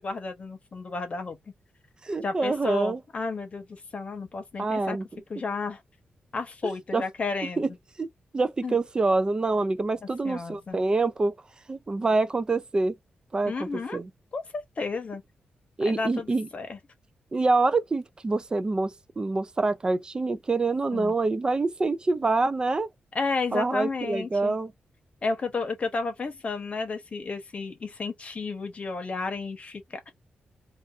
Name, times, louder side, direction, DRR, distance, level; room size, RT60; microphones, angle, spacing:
voice 1, 0.0-1.4 2.2-5.0 5.3-5.8 6.3-7.8 8.6-8.8 10.2-10.8 13.4-14.0 14.3-15.2 15.8-16.8 20.9-21.1 23.1-24.6 25.2-30.1, left 4 dB, 40° left, 0.8 m, -32 dB
voice 2, 2.0-3.0 4.6-5.2 6.6-7.0 7.6-7.7 8.0-11.3 11.7-12.9 13.3-14.1 15.8-16.5 17.3-22.9 23.5-24.7, right 3 dB, 25° right, 0.3 m, -26 dB
2.6 x 2.4 x 2.3 m
wide cardioid pair, 135°, 3 cm